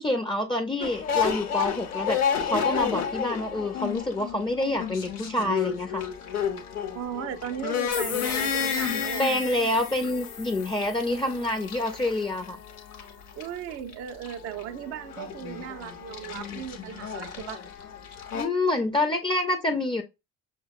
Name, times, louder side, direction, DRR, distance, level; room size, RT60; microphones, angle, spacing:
voice 1, 0.0-2.2 2.4-6.0 9.2-12.6 18.3-20.0, left 1 dB, 10° left, 0.6 m, -27 dB
sound 1, 0.8-18.4, left 7 dB, 80° left, 0.8 m, -31 dB
voice 2, 6.9-9.4 13.4-17.6, right 9 dB, 35° right, 0.4 m, -37 dB
sound 2, 7.9-12.6, left 9 dB, 45° left, 0.8 m, -39 dB
6.2 x 2.2 x 2.2 m
figure-of-eight pair, 50°, 44 cm